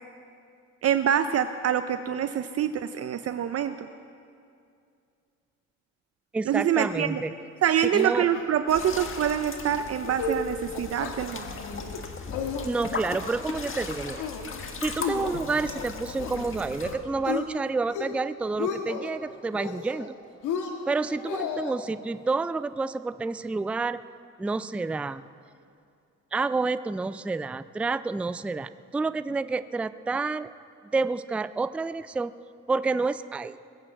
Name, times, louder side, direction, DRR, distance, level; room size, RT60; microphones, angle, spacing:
voice 1, 0.8-3.7 6.5-7.2 7.6-11.5, right 9 dB, 55° right, 10 dB, 0.6 m, -25 dB
voice 2, 6.3-7.3 7.9-8.3 12.6-14.2 14.8-20.2 20.9-24.0 24.4-25.2 26.3-30.5 30.9-32.3 32.7-33.6, right 3 dB, 5° right, 14 dB, 0.3 m, -29 dB
sound 1, 8.0-8.5 8.8-8.9 9.3-9.5 9.9-10.4 10.7-11.1 11.6-12.0 12.3-13.0 13.4-13.8 14.2-14.6 15.0-16.5 16.8-17.5 17.8-18.2 18.5-19.1 19.5-20.1 20.4-21.7, left 6 dB, 90° left, 1.6 m, -34 dB
sound 2, 8.7-17.0, left 4 dB, 45° left, 1.6 m, -37 dB
20.0 x 8.7 x 7.8 m, 2.4 s
cardioid pair, 90°, 30 cm